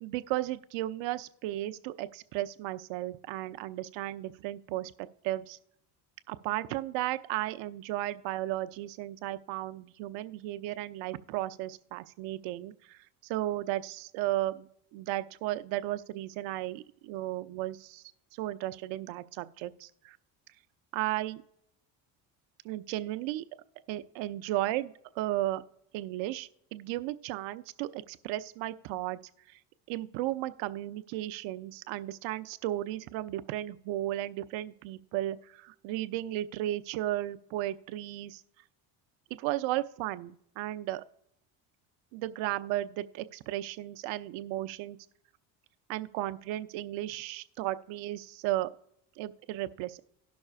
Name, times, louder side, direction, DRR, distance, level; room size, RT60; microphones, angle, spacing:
voice 1, 0.0-4.9 5.2-5.6 6.3-13.0 13.3-14.7 14.9-18.0 18.4-20.2 20.9-21.4 22.6-23.4 23.9-25.6 25.9-29.2 29.9-38.4 39.4-41.0 42.1-45.0 45.9-48.7 49.2-50.0, right 15 dB, 70° right, 12 dB, 0.7 m, -34 dB
18.0 x 6.1 x 2.4 m, 0.77 s
supercardioid pair, 95°, 47 cm